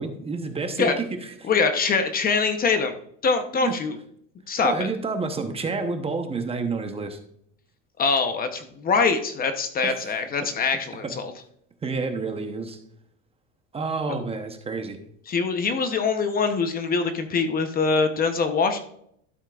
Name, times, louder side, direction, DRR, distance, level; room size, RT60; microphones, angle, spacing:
voice 1, 0.0-1.5 3.6-3.8 4.6-7.2 9.8-10.0 11.0-11.1 11.8-12.8 13.7-15.0, right 4 dB, 20° right, 6 dB, 0.8 m, -29 dB
voice 2, 1.4-2.9 3.2-4.0 4.5-4.9 8.0-11.3 15.3-18.8, left 4 dB, 30° left, 8 dB, 0.7 m, -23 dB
12.5 x 7.3 x 2.3 m, 0.69 s
cardioid pair, 140°, 32 cm